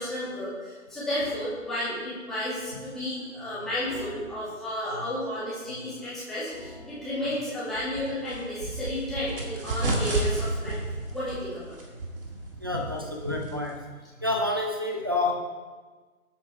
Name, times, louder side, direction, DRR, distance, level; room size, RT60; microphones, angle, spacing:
voice 1, 0.0-10.8 11.1-11.7, left 1 dB, ahead, -12 dB, 2.1 m, -32 dB
sound 1, 1.2-1.6 3.8-4.8 6.5-7.6 9.2-10.5, left 1 dB, 30° left, 1.7 m, -47 dB
sound 2, 7.7-13.9, right 2 dB, 40° right, 2.0 m, -32 dB
voice 2, 12.6-13.9 14.2-15.3, left 2 dB, 15° right, -1 dB, 0.7 m, -28 dB
22.0 x 8.6 x 3.4 m, 1.4 s
figure-of-eight pair, 155°, 43 cm